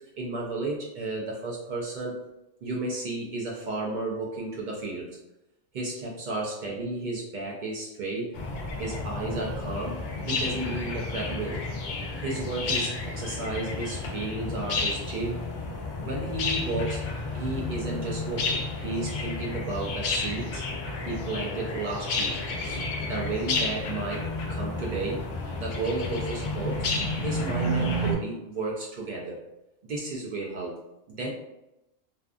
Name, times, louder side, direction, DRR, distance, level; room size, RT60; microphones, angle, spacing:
voice 1, 0.2-2.2 2.6-5.2 5.7-8.4 8.8-11.6 12.2-15.5 16.0-20.6 21.0-22.4 22.6-22.8 23.1-25.3 25.5-26.8 27.2-29.4 29.8-30.7 31.1-31.3, right 2 dB, 90° right, -3 dB, 0.4 m, -33 dB
sound 1, 8.3-28.1, left 2 dB, 85° left, 0.4 m, -31 dB
2.6 x 2.4 x 2.4 m, 0.92 s
omnidirectional pair, 1.3 m